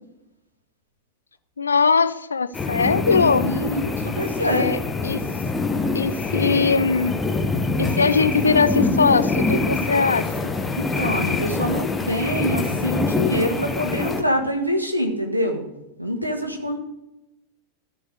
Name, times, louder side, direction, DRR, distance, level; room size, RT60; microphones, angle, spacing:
voice 1, 1.6-3.6 4.4-5.2 5.9-7.2 7.8-10.6, left 5 dB, 75° left, 14 dB, 0.5 m, -21 dB
sound 1, 2.5-14.2, left 3 dB, 15° left, 1.1 m, -24 dB
voice 2, 3.5-4.7 10.7-15.7 16.0-16.8, equal, 85° right, 4 dB, 1.5 m, -25 dB
13.5 x 5.5 x 6.5 m, 0.92 s
figure-of-eight pair, 90°, 0 cm